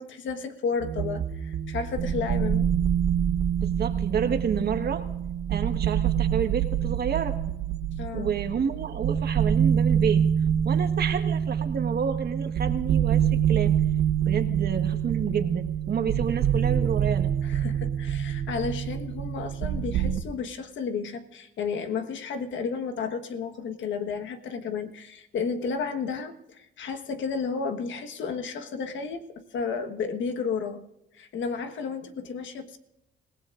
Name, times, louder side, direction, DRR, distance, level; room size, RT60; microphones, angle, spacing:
voice 1, 0.0-2.7 8.0-8.4 17.4-30.8 31.1-32.8, left 5 dB, 70° left, 7 dB, 1.4 m, -32 dB
sound 1, 0.8-20.2, right 9 dB, 75° right, 1.1 m, -26 dB
voice 2, 3.6-5.0 5.5-7.4 8.1-10.2 10.6-13.8 14.2-17.3, right 7 dB, 55° right, 7 dB, 1.5 m, -29 dB
26.5 x 17.0 x 2.5 m, 0.93 s
cardioid pair, 90°, 20 cm